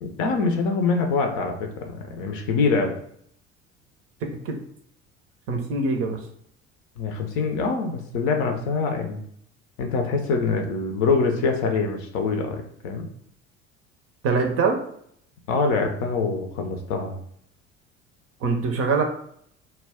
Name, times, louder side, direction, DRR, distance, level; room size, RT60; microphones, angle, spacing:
voice 1, 0.0-2.9 7.0-9.2 9.8-13.1 15.5-17.2, left 4 dB, 50° left, 4 dB, 0.6 m, -24 dB
voice 2, 5.5-6.2 14.2-14.8 18.4-19.0, right 4 dB, 40° right, 3 dB, 0.6 m, -23 dB
2.2 x 2.2 x 3.4 m, 0.67 s
figure-of-eight pair, 65°, 36 cm